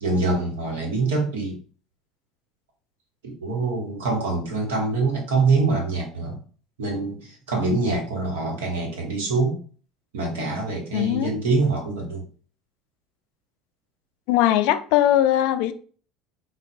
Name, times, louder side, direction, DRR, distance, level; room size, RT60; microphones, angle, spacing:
voice 1, 0.0-1.6 3.2-6.4 6.8-7.2 7.5-9.6 10.1-12.2, right 3 dB, 80° right, 1.0 m, -24 dB
voice 2, 10.9-11.3 14.3-15.7, left 12 dB, 65° left, 0.3 m, -20 dB
3.9 x 2.1 x 2.5 m
hypercardioid pair, 70°, 0 cm